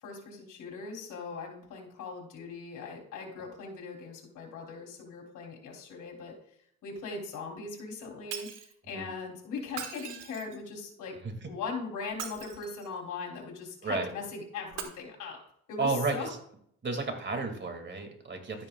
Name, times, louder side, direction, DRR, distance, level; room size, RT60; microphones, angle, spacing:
voice 1, 0.0-6.3 6.8-8.5 8.9-11.1 11.5-15.4 15.7-16.3, left 4 dB, 85° left, 1 dB, 3.2 m, -40 dB
Shatter, 8.3-8.7 9.7-10.7 12.0-13.0 14.7-14.8, right 8 dB, 90° right, 1.6 m, -40 dB
voice 2, 15.8-16.4 16.8-18.7, right 3 dB, 40° right, 5 dB, 2.2 m, -32 dB
12.5 x 9.5 x 2.3 m, 0.66 s
cardioid pair, 90°, 30 cm